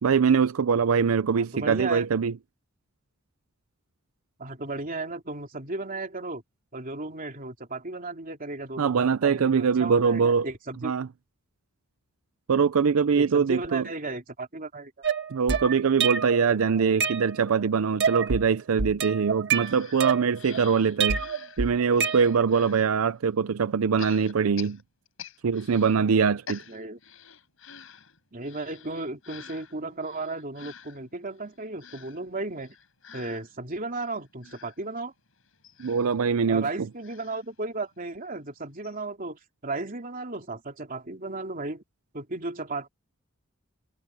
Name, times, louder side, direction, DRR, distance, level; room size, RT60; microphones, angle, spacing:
voice 1, 0.0-2.3 8.8-10.5 10.8-11.1 12.5-13.8 15.3-21.2 21.6-24.8 25.4-26.6 35.8-36.7, right 6 dB, 90° right, 0.5 m, -23 dB
voice 2, 1.4-2.0 4.4-6.4 6.7-8.9 9.2-10.9 13.1-14.9 16.5-17.1 26.7-27.0 28.3-32.7 33.1-35.1 36.5-41.8 42.1-42.9, right 2 dB, 40° right, 3.0 m, -35 dB
sound 1, 15.0-16.5 16.8-17.6 18.0-18.5 18.8-20.6 21.0-22.6, right 6 dB, 60° right, 1.9 m, -27 dB
sound 2, 19.6-22.9 24.0-26.0 26.2-38.2 38.5-38.6 38.8-39.0, left 7 dB, 75° left, 6.3 m, -48 dB
head